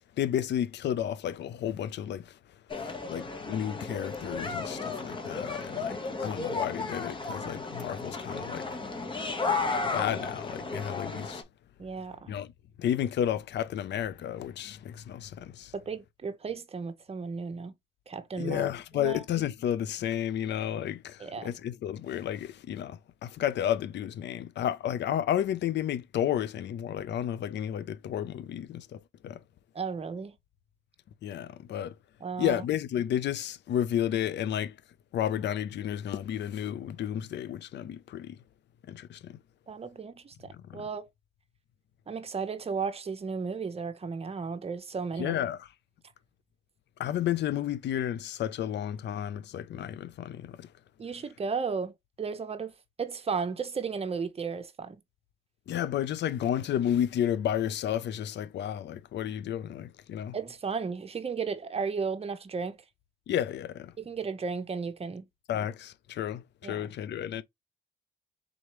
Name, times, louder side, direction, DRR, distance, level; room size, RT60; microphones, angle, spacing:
voice 1, 0.2-2.3 2.8-8.7 9.9-11.4 12.3-12.5 12.8-15.7 18.4-29.4 31.2-31.9 32.4-34.7 35.1-38.4 38.9-39.4 40.7-40.8 45.2-45.7 47.0-50.7 55.7-60.4 63.3-63.9 65.5-67.4, left 10 dB, 60° left, 0.5 m, -32 dB
sound 1, 2.7-11.4, left 3 dB, 25° left, 1.1 m, -34 dB
voice 2, 11.8-12.3 15.7-17.7 18.1-18.7 18.9-19.2 21.2-21.6 29.7-30.3 32.2-32.6 39.7-41.1 42.1-45.4 51.0-52.7 53.0-55.0 60.3-62.8 64.0-65.2 66.6-66.9, right 5 dB, 30° right, 0.8 m, -34 dB
3.8 x 3.1 x 3.0 m
cardioid pair, 90°, 20 cm